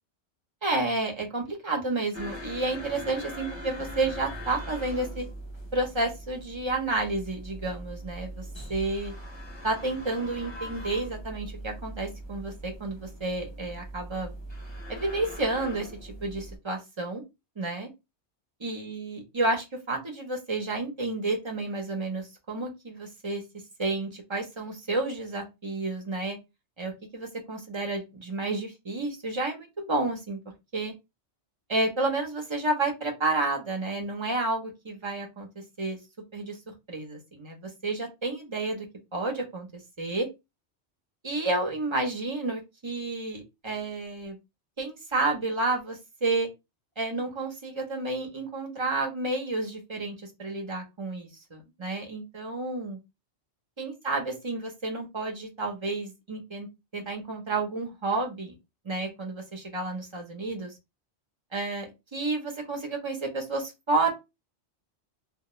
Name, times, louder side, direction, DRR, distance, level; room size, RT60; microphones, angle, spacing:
voice 1, 0.6-5.3 5.7-9.1 9.6-14.3 14.9-17.2 17.6-17.9 18.6-23.4 23.8-26.4 26.8-30.4 30.7-30.9 31.7-36.0 36.3-36.6 36.9-38.9 39.1-39.7 40.0-40.3 41.2-44.4 44.8-46.5 47.0-53.0 53.8-56.7 56.9-58.5 58.8-60.8 61.5-64.1, right 2 dB, 30° right, 2 dB, 0.6 m, -31 dB
sound 1, 2.1-16.6, equal, 30° left, 0.7 m, -41 dB
2.2 x 2.1 x 2.9 m, 0.23 s
omnidirectional pair, 1.2 m